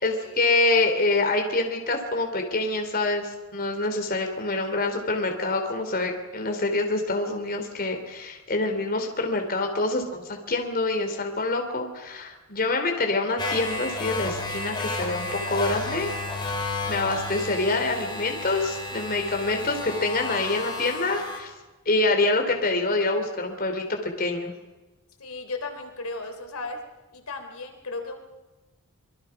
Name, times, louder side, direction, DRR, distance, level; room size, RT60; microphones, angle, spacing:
voice 1, 0.0-16.1 16.9-21.5 21.9-24.5, left 2 dB, 45° left, 4 dB, 3.4 m, -26 dB
sound 1, 13.4-21.4, left 2 dB, 20° left, 4.9 m, -32 dB
voice 2, 25.2-26.8 27.1-28.2, left 3 dB, 80° left, 6 dB, 3.7 m, -35 dB
26.0 x 23.5 x 6.0 m, 1.1 s
head